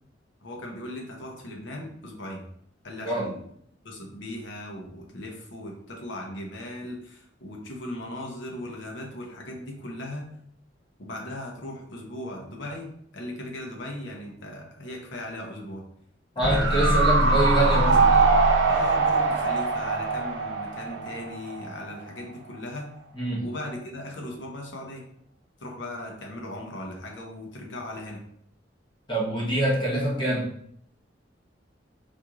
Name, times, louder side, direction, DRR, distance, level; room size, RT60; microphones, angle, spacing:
voice 1, 0.4-2.5 2.8-3.4 3.8-10.3 11.0-15.8 16.4-18.3 18.7-22.9 23.4-25.0 25.6-28.2, left 1 dB, 80° left, 0 dB, 0.9 m, -38 dB
voice 2, 16.4-18.0 23.2-23.5 29.1-30.5, right 1 dB, 25° left, -6 dB, 1.2 m, -25 dB
sound 1, 16.4-21.7 22.0-22.1, right 3 dB, 65° right, 0.7 m, -22 dB
4.2 x 2.9 x 2.4 m, 0.68 s
head